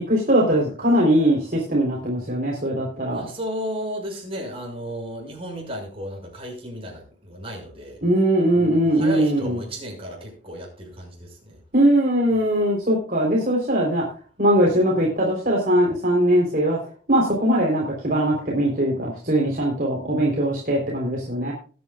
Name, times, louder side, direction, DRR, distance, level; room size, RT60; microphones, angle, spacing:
voice 1, 0.0-3.3 8.0-9.6 11.7-14.0 14.4-16.8 17.1-21.5, right 1 dB, 50° right, -2 dB, 3.7 m, -20 dB
voice 2, 3.1-8.0 8.5-11.6, equal, 30° right, 0 dB, 6.2 m, -34 dB
20.5 x 9.4 x 2.4 m, 0.39 s
head